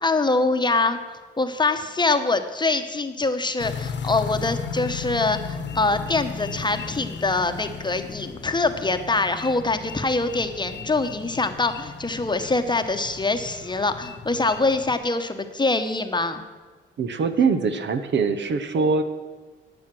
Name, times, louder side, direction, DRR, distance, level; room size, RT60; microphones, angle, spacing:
voice 1, 0.0-16.5, left 3 dB, 20° left, 8 dB, 1.0 m, -24 dB
sound 1, 3.6-15.0, left 5 dB, 60° left, 1.1 m, -35 dB
voice 2, 17.0-19.0, right 5 dB, 60° right, 10 dB, 1.0 m, -22 dB
12.0 x 8.6 x 6.1 m, 1.4 s
cardioid pair, 75°, 21 cm